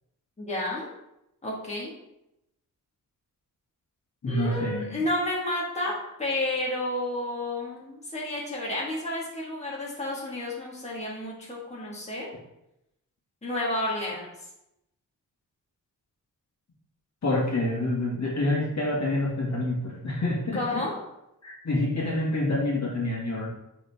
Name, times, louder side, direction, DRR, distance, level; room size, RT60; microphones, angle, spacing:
voice 1, 0.4-0.9 1.4-1.9 4.3-5.9 6.2-12.3 13.4-14.3 20.5-20.9, left 1 dB, 20° left, -5 dB, 1.7 m, -31 dB
voice 2, 4.2-5.0 17.2-20.8 21.4-23.5, left 1 dB, 55° left, -3 dB, 1.9 m, -27 dB
9.4 x 3.9 x 3.5 m, 0.86 s
wide cardioid pair, 120°, 34 cm